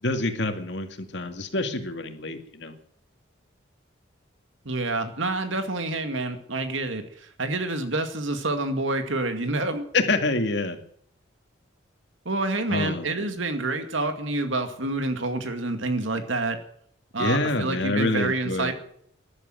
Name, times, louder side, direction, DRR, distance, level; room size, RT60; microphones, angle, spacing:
voice 1, 0.0-2.7 9.9-10.8 12.7-13.3 17.2-18.7, left 2 dB, 60° left, 6 dB, 2.2 m, -27 dB
voice 2, 4.6-9.8 12.3-16.6 17.1-18.7, right 2 dB, 75° right, 8 dB, 2.2 m, -28 dB
14.0 x 11.0 x 9.2 m, 0.64 s
head